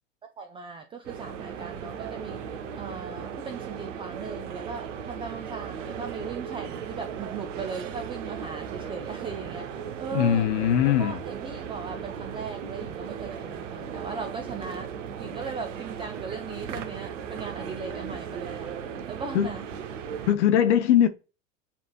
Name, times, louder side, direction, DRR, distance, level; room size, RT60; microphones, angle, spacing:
voice 1, 0.4-2.5 2.7-10.5 11.0-14.9 15.2-18.7 19.1-19.7, right 5 dB, 15° right, 0.4 m, -38 dB
sound 1, 1.0-20.3, right 7 dB, 70° right, 0.8 m, -37 dB
voice 2, 10.1-11.2 19.3-19.5 20.2-21.1, left 10 dB, 65° left, 0.6 m, -21 dB
6.8 x 3.1 x 2.2 m
figure-of-eight pair, 85°, 39 cm